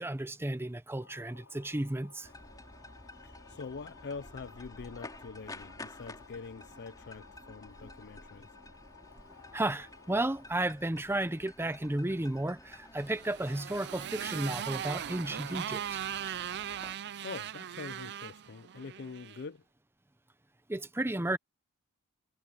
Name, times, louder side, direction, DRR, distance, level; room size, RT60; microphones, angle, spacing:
voice 1, 0.0-2.3 7.8-7.9 9.5-16.0 20.7-21.4, right 1 dB, 10° right, 0.7 m, -33 dB
sound 1, 1.0-10.5, left 4 dB, 75° left, 5.5 m, -57 dB
sound 2, 2.2-16.9, left 2 dB, 15° left, 3.3 m, -51 dB
voice 2, 3.2-8.6 16.9-19.6, left 4 dB, 50° left, 0.5 m, -45 dB
Motorcycle, 13.0-19.4, right 9 dB, 50° right, 0.5 m, -39 dB
head